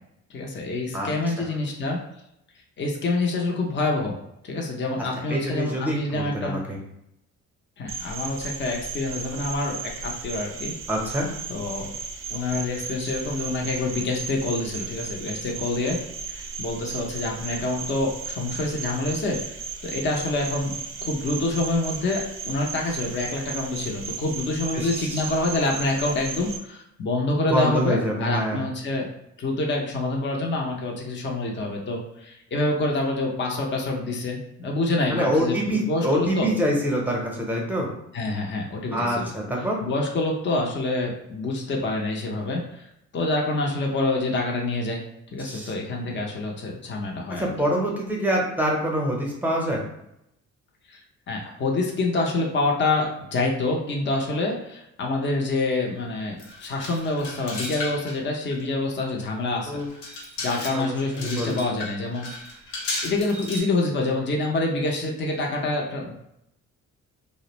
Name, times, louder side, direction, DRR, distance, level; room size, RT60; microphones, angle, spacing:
voice 1, 0.3-2.0 2.8-4.2 4.4-6.6 7.8-10.7 11.5-11.9 12.3-16.0 16.3-19.6 19.8-20.7 21.0-29.1 29.4-36.5 38.1-39.3 39.8-42.8 43.1-45.0 45.3-47.5 50.9-51.0 51.3-59.7 60.0-60.2 60.4-62.6 63.0-66.2, left 2 dB, 40° left, 0 dB, 0.6 m, -27 dB
voice 2, 5.3-6.8 10.9-11.3 24.7-25.2 27.5-28.6 35.1-37.9 38.9-39.8 45.5-45.7 47.3-49.8 59.7-59.9 60.7-61.6, equal, 5° right, -1 dB, 0.7 m, -25 dB
Cricket, 7.9-26.6, right 5 dB, 45° right, 0.4 m, -35 dB
sound 1, 56.4-58.2 58.5-58.6 59.2-59.3 59.8-63.6, left 2 dB, 85° left, 0.8 m, -35 dB
2.4 x 2.0 x 2.9 m, 0.80 s
cardioid pair, 90°, 30 cm